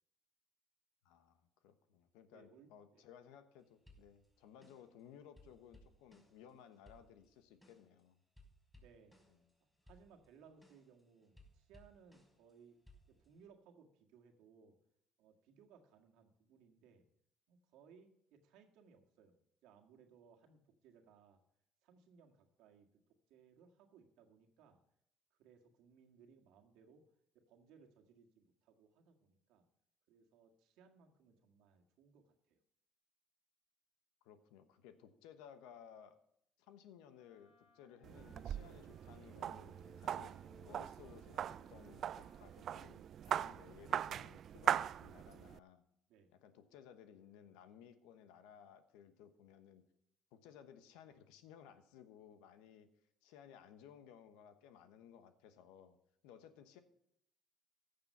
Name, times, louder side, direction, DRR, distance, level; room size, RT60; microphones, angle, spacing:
voice 1, 1.0-8.2 34.2-36.2 36.6-40.4 40.6-45.8 46.4-49.8 50.3-52.9 53.2-56.0 56.2-56.8, left 8 dB, 85° left, 10 dB, 1.1 m, -59 dB
voice 2, 2.3-3.1 8.7-9.2 9.6-12.8 13.1-14.8 15.2-17.1 17.5-21.4 21.8-22.9 23.3-24.8 25.3-27.1 27.3-29.7 30.1-32.6 46.1-46.3, right 6 dB, 80° right, 3 dB, 1.8 m, -65 dB
sound 1, 3.9-5.0 5.4-8.0 8.4-9.5 9.8-12.5 12.9-13.5, left 1 dB, 5° left, 5.3 m, -65 dB
Wind instrument woodwind instrument, 37.1-39.4 39.6-42.8, left 4 dB, 70° left, 2.7 m, -68 dB
sound 2, 38.0-45.6, right 10 dB, 60° right, 0.3 m, -41 dB
14.5 x 6.8 x 5.5 m, 0.74 s
supercardioid pair, 70°, 0 cm